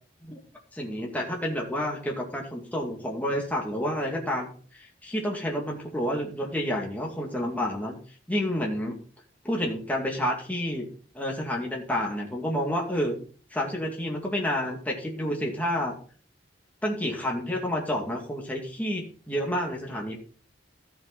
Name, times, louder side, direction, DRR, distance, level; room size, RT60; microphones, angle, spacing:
voice 1, 0.7-4.5 5.0-8.0 8.3-9.0 9.4-10.9 11.1-13.2 13.5-16.0 16.8-20.2, equal, 10° left, -1 dB, 2.2 m, -29 dB
14.0 x 7.2 x 4.0 m, 0.41 s
head